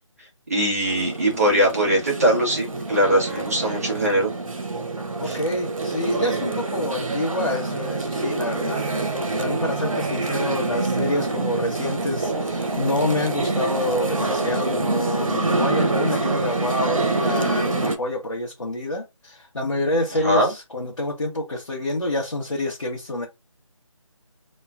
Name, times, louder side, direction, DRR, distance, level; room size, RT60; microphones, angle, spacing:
voice 1, 0.5-4.3 5.2-5.4 20.2-20.5, right 1 dB, 30° right, 1.0 m, -21 dB
sound 1, 0.8-18.0, right 2 dB, 85° right, 0.8 m, -26 dB
voice 2, 5.2-8.8 9.4-23.3, left 1 dB, 65° left, 0.9 m, -27 dB
3.0 x 2.3 x 2.4 m
figure-of-eight pair, 175°, 17 cm